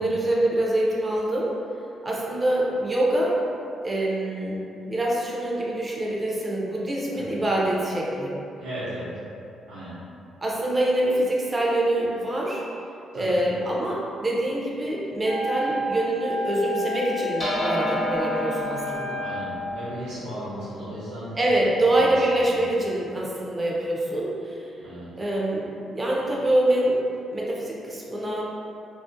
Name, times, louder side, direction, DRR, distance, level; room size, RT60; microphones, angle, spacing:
voice 1, 0.0-1.6 2.0-3.4 3.8-4.6 4.9-8.4 10.4-12.6 13.1-19.2 21.4-24.7 25.1-28.4, right 1 dB, 25° right, -4 dB, 0.5 m, -25 dB
voice 2, 8.6-9.1 9.7-10.0 13.1-13.3 19.2-22.1 22.5-22.6 24.8-25.1, equal, 85° right, -14 dB, 0.6 m, -36 dB
Wind instrument woodwind instrument, 15.2-19.7, left 2 dB, 60° left, 0.4 m, -31 dB
sound 1, 17.4-22.1, equal, 20° left, 0.7 m, -31 dB
2.4 x 2.0 x 2.5 m, 2.6 s
cardioid pair, 90°, 0 cm